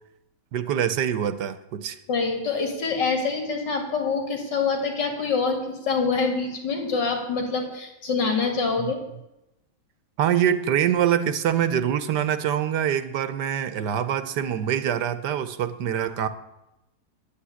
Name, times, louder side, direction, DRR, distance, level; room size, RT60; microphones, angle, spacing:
voice 1, 0.5-2.0 8.8-8.9 10.2-16.3, right 9 dB, 75° right, 12 dB, 1.4 m, -24 dB
voice 2, 2.1-9.0, left 4 dB, 90° left, 3 dB, 3.0 m, -25 dB
10.5 x 8.6 x 9.7 m, 0.90 s
omnidirectional pair, 1.9 m